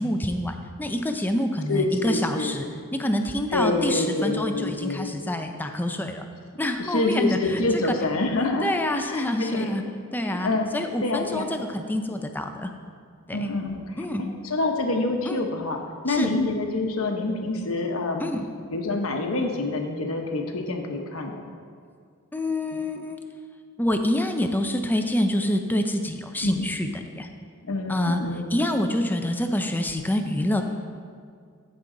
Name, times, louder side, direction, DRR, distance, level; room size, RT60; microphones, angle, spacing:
voice 1, 0.0-6.3 6.6-7.6 8.4-9.8 10.1-12.7 13.3-13.5 14.0-14.4 15.3-15.5 16.1-16.3 18.2-18.4 22.3-23.2 23.8-27.3 27.9-28.2 28.5-30.6, left 1 dB, 10° left, 5 dB, 0.5 m, -27 dB
voice 2, 1.7-2.6 3.5-5.1 6.8-8.7 9.1-9.8 10.2-10.7 11.0-11.5 13.3-13.9 14.4-18.3 18.7-21.5 26.4-26.7 27.6-28.7, left 2 dB, 75° left, 3 dB, 1.0 m, -26 dB
14.5 x 5.4 x 3.8 m, 2.2 s
head